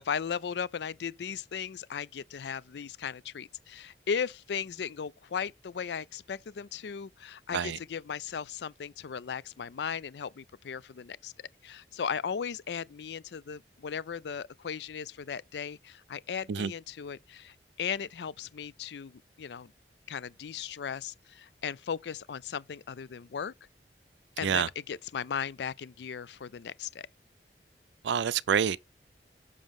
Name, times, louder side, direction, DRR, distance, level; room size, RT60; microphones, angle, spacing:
voice 1, 0.0-11.3 11.6-19.7 20.1-23.5 24.4-27.1, left 7 dB, 80° left, 0.4 m, -37 dB
voice 2, 28.0-28.8, right 7 dB, 90° right, 0.4 m, -27 dB
7.1 x 6.3 x 3.6 m
head